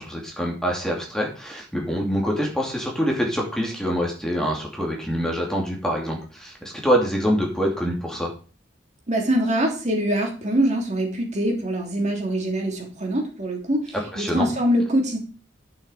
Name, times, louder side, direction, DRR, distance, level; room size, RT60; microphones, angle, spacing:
voice 1, 0.0-8.3 14.1-14.5, equal, 5° left, -1 dB, 2.6 m, -25 dB
voice 2, 9.1-15.2, right 1 dB, 40° right, 1 dB, 3.1 m, -24 dB
11.0 x 6.7 x 5.0 m, 0.37 s
head